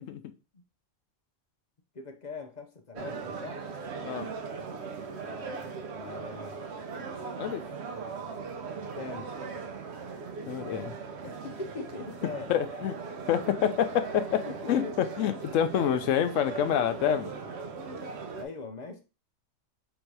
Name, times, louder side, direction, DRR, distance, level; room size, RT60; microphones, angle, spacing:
voice 1, 1.9-3.7 5.2-6.6 8.9-9.7 11.2-12.8 13.5-13.7 14.5-15.1 18.3-19.0, left 3 dB, 45° left, 5 dB, 0.6 m, -42 dB
sound 1, 3.0-18.4, right 5 dB, 65° right, 0.9 m, -39 dB
voice 2, 10.5-10.9 12.5-12.9 13.3-14.4 14.7-14.8 15.2-17.3, left 9 dB, 85° left, 9 dB, 1.0 m, -27 dB
3.8 x 2.6 x 4.6 m, 0.31 s
omnidirectional pair, 1.3 m